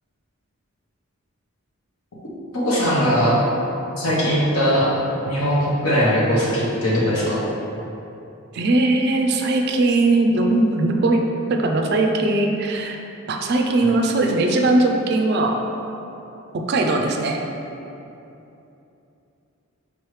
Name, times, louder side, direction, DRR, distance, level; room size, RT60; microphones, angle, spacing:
voice 1, 2.6-3.4 4.0-4.9 5.3-7.4, equal, 75° left, -6 dB, 1.1 m, -20 dB
voice 2, 8.5-13.0 13.3-15.6 16.7-17.4, right 2 dB, 50° right, 3 dB, 0.3 m, -19 dB
5.2 x 3.1 x 3.2 m, 2.9 s
head